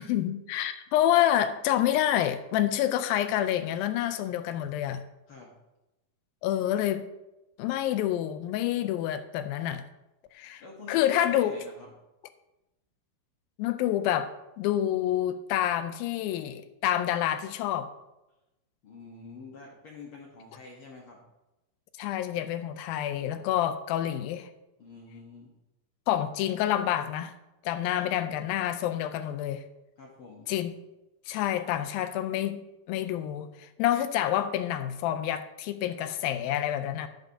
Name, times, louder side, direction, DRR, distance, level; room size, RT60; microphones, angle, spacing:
voice 1, 0.0-5.0 6.4-7.1 7.6-9.8 10.3-10.6 10.9-11.5 13.6-14.3 14.6-17.9 22.0-24.5 26.1-27.3 27.6-29.6 30.5-30.7 31.3-37.1, left 11 dB, 85° left, 11 dB, 2.4 m, -28 dB
voice 2, 10.6-11.9 18.8-21.2 24.8-25.5 27.9-28.1 30.0-30.5, left 3 dB, 60° left, -2 dB, 1.3 m, -46 dB
11.5 x 11.0 x 2.8 m, 0.97 s
omnidirectional pair, 4.1 m